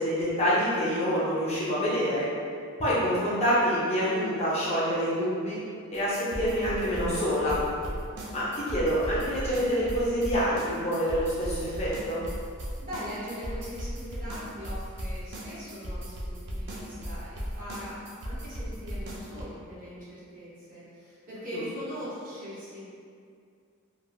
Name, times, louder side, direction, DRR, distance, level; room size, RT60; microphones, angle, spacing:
voice 1, 0.0-2.3 2.8-5.6 5.9-7.6 8.3-12.2 21.5-21.6, equal, 30° left, -8 dB, 0.5 m, -27 dB
sound 1, 5.9-19.4, equal, 55° right, 0.4 m, -36 dB
voice 2, 12.8-22.8, equal, 40° right, -9 dB, 0.9 m, -41 dB
3.1 x 2.1 x 2.2 m, 2.3 s
head